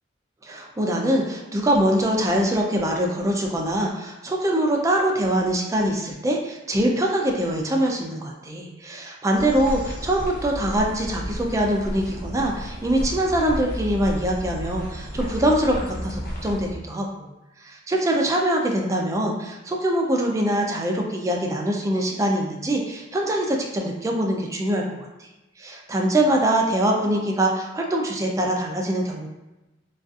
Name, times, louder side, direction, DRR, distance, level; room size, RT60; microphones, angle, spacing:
voice 1, 0.4-17.3 17.6-25.3 25.6-29.3, right 1 dB, 20° right, 0 dB, 0.3 m, -23 dB
sound 1, 9.3-16.7, equal, 60° left, 0.7 m, -33 dB
2.5 x 2.3 x 2.3 m, 1.0 s
head